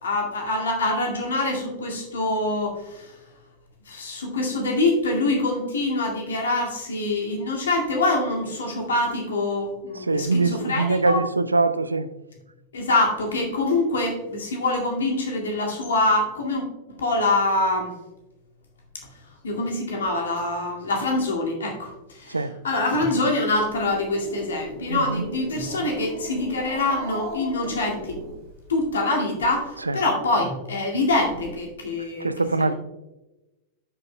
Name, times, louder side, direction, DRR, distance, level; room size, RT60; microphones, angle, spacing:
voice 1, 0.0-3.2 3.9-11.2 12.7-16.6 16.9-17.9 19.4-28.2 28.7-32.3 32.6-32.7, left 2 dB, 65° left, 2.1 m, -25 dB
voice 2, 10.1-12.1 22.3-22.5 24.9-25.2 29.9-30.0 32.2-32.7, right 3 dB, 80° right, 0.4 m, -23 dB
Growling, 23.5-28.9, right 1 dB, 45° right, 2.5 m, -38 dB
12.0 x 6.8 x 2.2 m
figure-of-eight pair, 90°, 0 cm